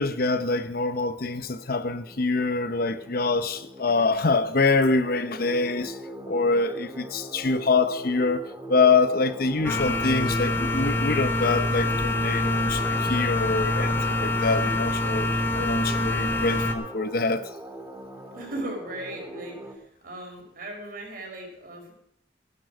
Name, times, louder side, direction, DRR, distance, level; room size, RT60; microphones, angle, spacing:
voice 1, 0.0-6.0 6.3-8.4 8.7-15.3 15.5-17.5, left 3 dB, 60° left, 0.9 m, -25 dB
sound 1, 1.3-19.7, equal, 20° right, 1.7 m, -41 dB
sound 2, 9.7-16.8, left 2 dB, 15° left, 1.3 m, -25 dB
voice 2, 18.3-21.9, right 1 dB, 55° right, 5.1 m, -37 dB
15.0 x 11.5 x 4.9 m
head